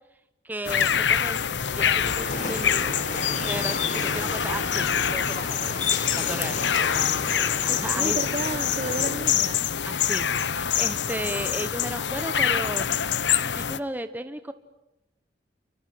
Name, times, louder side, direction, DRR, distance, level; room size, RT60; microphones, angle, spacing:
voice 1, 0.4-1.4 1.7-2.9 3.5-5.6 6.2-6.6 7.4-8.2 9.8-12.9 13.4-14.5, right 1 dB, 10° right, 10 dB, 1.0 m, -34 dB
sound 1, 0.6-13.8, left 8 dB, 90° left, 0.9 m, -25 dB
sound 2, 2.0-9.1, left 3 dB, 45° left, 4.6 m, -34 dB
voice 2, 7.0-9.7, right 2 dB, 45° right, 14 dB, 1.3 m, -33 dB
29.5 x 25.0 x 7.8 m, 0.94 s
head